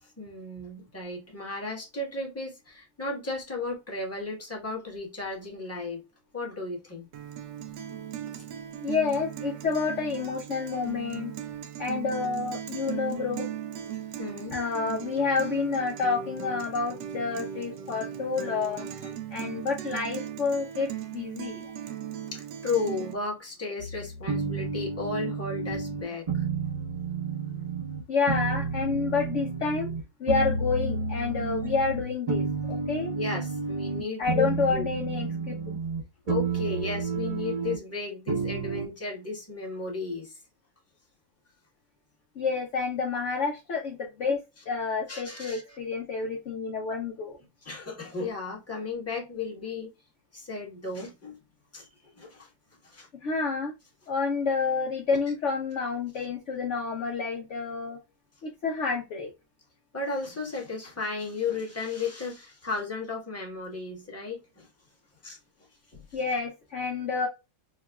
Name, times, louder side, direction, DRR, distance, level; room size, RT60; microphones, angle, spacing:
voice 1, 0.0-6.0 6.3-7.1 14.2-14.6 19.0-19.1 22.3-26.4 33.1-34.9 36.3-40.4 44.6-44.7 45.1-45.8 47.6-49.9 50.3-51.3 51.7-52.5 52.8-53.1 59.9-64.7 65.2-65.4 65.9-66.4 67.2-67.3, left 3 dB, 10° left, 1.0 m, -34 dB
Guitar, 7.1-23.1, right 9 dB, 75° right, 1.2 m, -38 dB
voice 2, 8.8-11.3 11.8-13.5 14.5-18.9 19.3-21.6 28.1-29.9 30.2-33.1 34.2-35.5 42.4-47.4 53.1-53.7 54.1-58.0 58.4-59.3 66.1-67.3, left 4 dB, 70° left, 0.7 m, -29 dB
sound 1, 23.8-28.0 28.3-30.0 30.3-34.0 34.3-36.0 36.3-37.8 38.3-38.8, right 4 dB, 45° right, 0.5 m, -31 dB
4.8 x 2.2 x 2.2 m
omnidirectional pair, 2.0 m